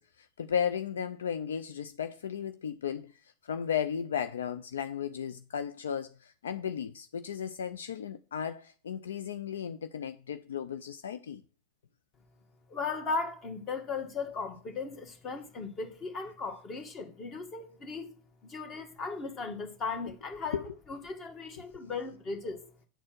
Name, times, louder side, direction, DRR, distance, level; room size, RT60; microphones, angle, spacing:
voice 1, 0.0-11.4 20.5-20.6 21.6-21.7, left 8 dB, 70° left, 0.4 m, -35 dB
voice 2, 12.7-18.1 18.4-20.6 20.9-22.6, left 4 dB, 30° left, 1.7 m, -37 dB
9.1 x 4.2 x 6.0 m
figure-of-eight pair, 90°, 0 cm